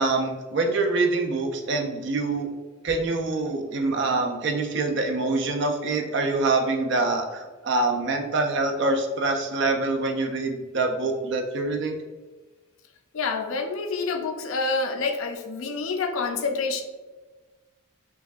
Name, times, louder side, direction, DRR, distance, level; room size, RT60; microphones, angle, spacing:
voice 1, 0.0-2.5 2.8-12.0, right 3 dB, 55° right, 4 dB, 0.4 m, -25 dB
voice 2, 13.1-16.8, left 4 dB, 75° left, 5 dB, 0.5 m, -27 dB
4.6 x 2.5 x 2.3 m, 1.3 s
head